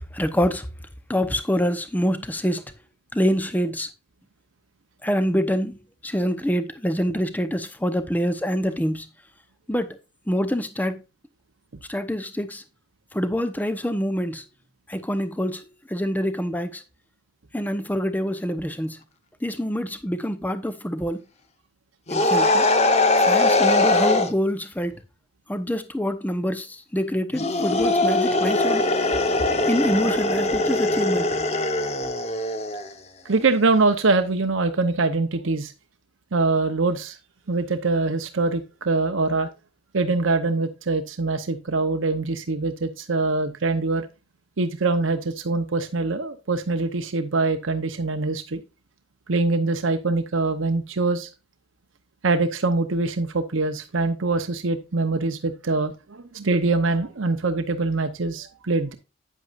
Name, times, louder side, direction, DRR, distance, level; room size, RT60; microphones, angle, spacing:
voice 1, 0.1-0.7 1.1-2.7 3.1-3.9 5.0-9.1 9.7-10.0 10.3-11.0 11.9-12.6 13.1-14.4 14.9-16.8 17.5-19.0 19.4-21.2 22.1-22.7 23.2-25.0 25.5-28.9 29.7-31.4, equal, 10° left, 0.8 m, -26 dB
sound 1, 22.1-24.3 27.3-32.9, left 2 dB, 35° left, 0.9 m, -21 dB
voice 2, 33.2-35.7 36.3-37.2 37.5-39.5 39.9-44.1 44.6-48.6 49.3-51.3 52.2-58.9, right 3 dB, 90° right, 0.8 m, -23 dB
9.5 x 8.4 x 2.5 m
head